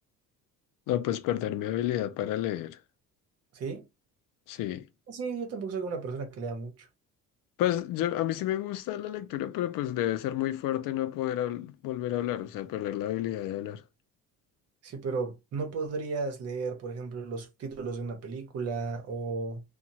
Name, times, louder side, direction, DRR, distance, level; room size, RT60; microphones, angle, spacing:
voice 1, 0.9-2.8 4.5-4.9 7.6-13.8, left 13 dB, 75° left, 0.5 m, -30 dB
voice 2, 5.1-6.9 14.8-19.6, right 4 dB, 45° right, 0.9 m, -34 dB
2.8 x 2.3 x 2.7 m
cardioid pair, 155°, 34 cm